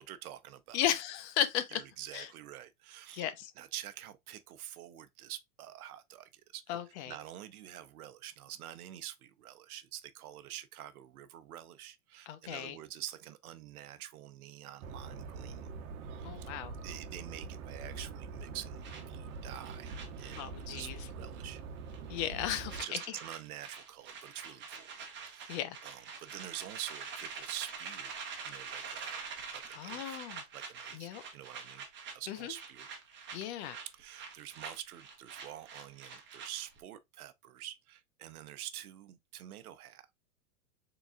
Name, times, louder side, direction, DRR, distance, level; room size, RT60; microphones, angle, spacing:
voice 1, 0.0-0.8 1.7-6.8 7.1-15.7 16.0-16.5 16.8-21.6 22.7-25.5 25.8-28.1 28.4-29.2 29.5-30.2 30.5-31.8 32.1-32.9 33.9-40.1, right 12 dB, 75° right, 0.8 m, -47 dB
voice 2, 0.7-1.8 2.1-2.3 3.1-3.5 6.7-7.1 12.3-12.8 16.2-16.7 20.4-21.0 22.1-23.0 25.5-25.8 29.7-30.4 30.9-31.2 32.3-32.5 33.3-33.8, left 11 dB, 50° left, 0.7 m, -35 dB
sound 1, 14.8-22.8, right 4 dB, 60° right, 1.1 m, -44 dB
sound 2, 18.8-21.1 21.3-21.6 21.9-36.8, right 5 dB, 25° right, 1.1 m, -46 dB
3.9 x 3.7 x 2.3 m
hypercardioid pair, 130°, 44 cm